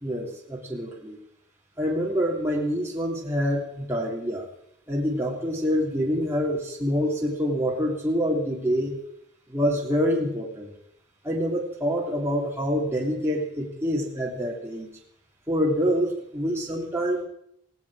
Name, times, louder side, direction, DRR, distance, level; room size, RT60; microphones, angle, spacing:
voice 1, 0.0-1.2 1.8-4.5 4.9-8.9 9.5-10.7 11.2-14.9 15.5-17.2, equal, 10° right, -3 dB, 3.0 m, -26 dB
17.5 x 17.0 x 4.9 m, 0.73 s
head